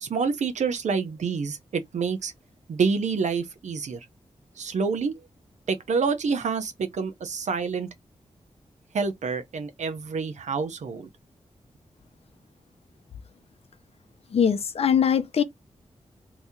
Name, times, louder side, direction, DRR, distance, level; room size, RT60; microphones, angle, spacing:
voice 1, 0.0-2.3 2.7-4.1 4.6-5.1 5.7-7.9 8.9-11.1, right 5 dB, 85° right, 0.7 m, -27 dB
voice 2, 14.3-15.4, left 7 dB, 60° left, 0.6 m, -21 dB
2.9 x 2.7 x 3.6 m
wide cardioid pair, 180°, 12 cm